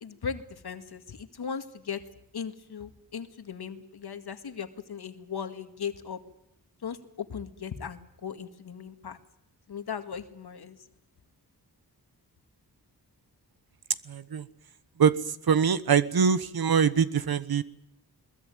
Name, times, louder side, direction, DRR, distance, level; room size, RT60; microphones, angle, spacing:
voice 1, 0.0-2.0 2.3-6.2 6.8-9.2 9.7-10.8, left 7 dB, 70° left, 9 dB, 2.0 m, -38 dB
voice 2, 14.1-14.5 15.0-15.1 15.4-17.6, right 7 dB, 65° right, 15 dB, 1.3 m, -23 dB
21.5 x 21.5 x 9.3 m, 0.77 s
wide cardioid pair, 80°, 39 cm